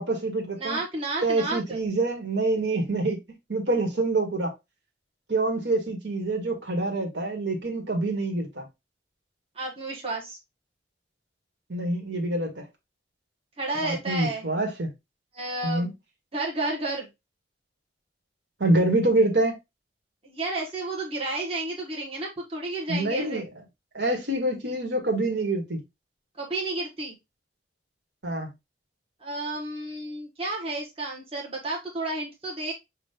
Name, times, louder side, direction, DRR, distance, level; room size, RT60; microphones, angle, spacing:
voice 1, 0.0-0.8 1.2-3.2 3.5-4.5 5.3-8.7 11.7-12.6 13.7-14.9 15.6-15.9 18.6-19.6 22.9-23.5 23.9-25.8 28.2-28.5, right 2 dB, 75° right, 1.6 m, -26 dB
voice 2, 0.6-1.8 9.5-10.4 13.6-14.5 15.3-15.9 16.3-17.1 20.2-23.4 26.4-27.1 29.2-32.7, right 2 dB, 30° right, 1.3 m, -31 dB
6.2 x 2.5 x 3.4 m
head